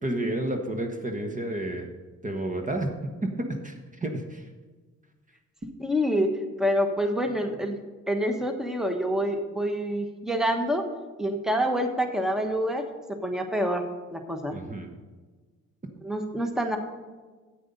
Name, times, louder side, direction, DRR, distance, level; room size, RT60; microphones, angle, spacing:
voice 1, 0.0-1.9 2.2-2.9 3.2-3.7 4.0-4.5 14.5-14.9, right 1 dB, 25° right, 4 dB, 1.2 m, -30 dB
voice 2, 5.8-7.8 8.1-10.8 11.2-13.9 14.1-14.6 16.0-16.8, equal, ahead, 5 dB, 1.2 m, -27 dB
9.6 x 8.4 x 5.4 m, 1.3 s
cardioid pair, 90°, 30 cm